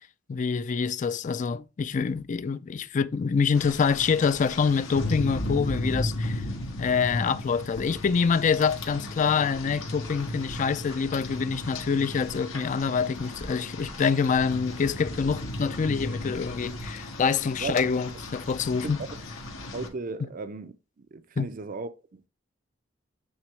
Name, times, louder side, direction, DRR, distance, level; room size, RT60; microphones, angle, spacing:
voice 1, 0.3-6.4 6.8-19.0 21.4-21.5, left 5 dB, 40° left, 0.4 m, -26 dB
Rain, 3.5-19.9, left 1 dB, 90° left, 1.6 m, -35 dB
voice 2, 19.7-22.3, right 3 dB, 45° right, 0.5 m, -36 dB
8.8 x 3.6 x 3.2 m
head